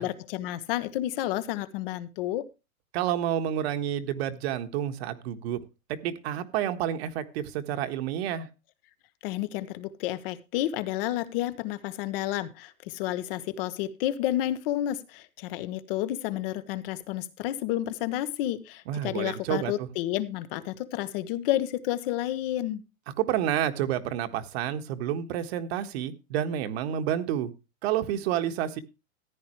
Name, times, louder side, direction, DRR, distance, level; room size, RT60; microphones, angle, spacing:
voice 1, 0.0-2.5 9.2-22.8, left 13 dB, 40° left, 14 dB, 1.2 m, -30 dB
voice 2, 2.9-5.6 6.0-8.5 18.9-19.9 23.2-27.5 27.8-28.8, right 10 dB, 50° right, 8 dB, 1.6 m, -29 dB
14.5 x 10.0 x 3.2 m, 0.28 s
supercardioid pair, 155°, 41 cm